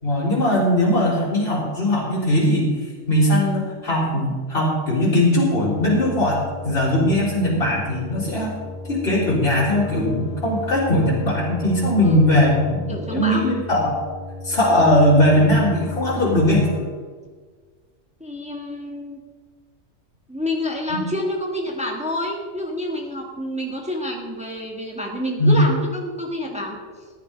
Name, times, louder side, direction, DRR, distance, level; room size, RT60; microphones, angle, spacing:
voice 1, 0.0-2.7 3.1-8.5 8.9-14.0 14.4-16.7 20.9-21.0 25.4-25.6, left 1 dB, 50° left, -10 dB, 4.3 m, -19 dB
sound 1, 5.5-16.8, left 2 dB, 50° right, 5.3 m, -34 dB
voice 2, 12.9-13.5 18.2-19.2 20.3-26.8, left 1 dB, 5° right, 0 dB, 1.7 m, -28 dB
14.0 x 10.0 x 5.2 m, 1.5 s
omnidirectional pair, 1.3 m